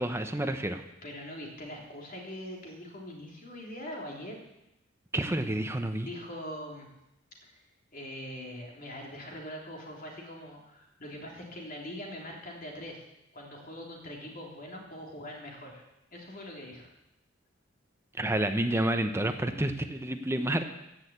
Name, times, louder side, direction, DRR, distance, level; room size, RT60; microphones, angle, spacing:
voice 1, 0.0-0.8 5.1-6.1 18.2-20.6, right 1 dB, 15° right, 7 dB, 0.8 m, -29 dB
voice 2, 1.0-4.4 6.0-6.9 7.4-7.6 7.9-13.0 13.3-15.8 16.1-16.9, equal, 45° left, -1 dB, 3.2 m, -42 dB
14.5 x 6.5 x 8.6 m, 0.88 s
head